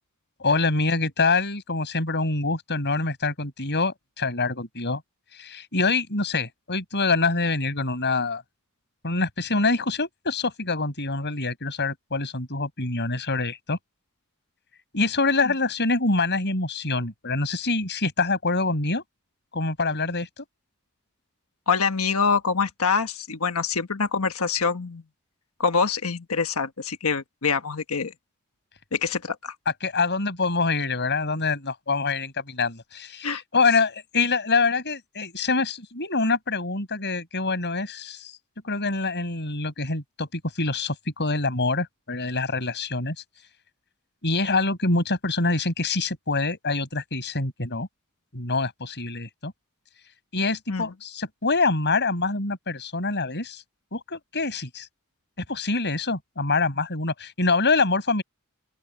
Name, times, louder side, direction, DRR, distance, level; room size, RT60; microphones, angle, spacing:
voice 1, 0.4-5.0 5.3-8.4 9.0-13.8 14.9-19.0 19.5-20.4 29.8-38.3 38.6-43.1 44.2-47.9 48.3-49.5 50.3-53.6 53.9-54.9 55.5-58.2, left 3 dB, 50° left, 6.6 m, -25 dB
voice 2, 21.7-25.0 25.6-28.1 28.9-29.5 33.2-33.4 50.7-50.9, left 5 dB, 75° left, 1.4 m, -25 dB
open air
head